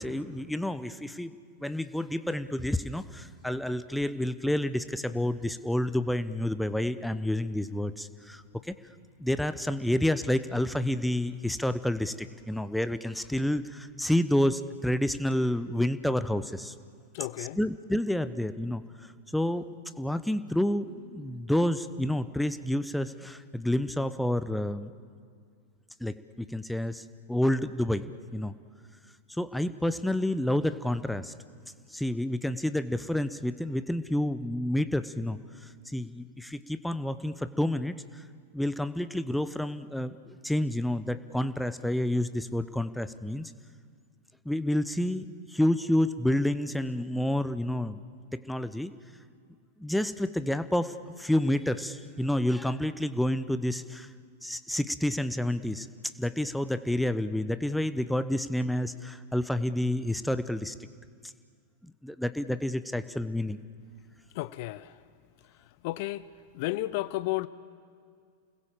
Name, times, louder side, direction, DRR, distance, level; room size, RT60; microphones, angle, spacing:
voice 1, 0.0-8.7 9.2-16.7 17.4-18.8 19.3-19.7 20.0-24.9 26.0-28.5 29.3-31.3 31.9-38.2 38.5-43.5 44.4-48.0 48.3-48.9 49.8-54.1 54.4-60.7 61.8-63.6, left 1 dB, ahead, 13 dB, 0.8 m, -29 dB
voice 2, 17.1-17.6 64.3-64.9 65.8-66.2 66.5-67.5, left 18 dB, 50° left, 17 dB, 0.6 m, -32 dB
29.0 x 20.5 x 7.5 m, 2.2 s
figure-of-eight pair, 90°, 0 cm